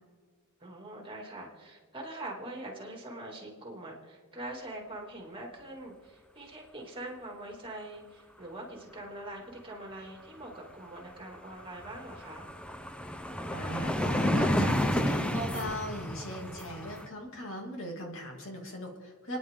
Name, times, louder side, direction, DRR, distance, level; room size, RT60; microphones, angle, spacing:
voice 1, 0.6-12.5, right 1 dB, 25° right, -1 dB, 3.0 m, -43 dB
sound 1, 11.0-11.1 11.3-17.1, equal, 5° left, 0.7 m, -31 dB
voice 2, 13.5-19.4, equal, 65° left, 0 dB, 2.9 m, -39 dB
30.0 x 10.0 x 3.9 m, 1.5 s
head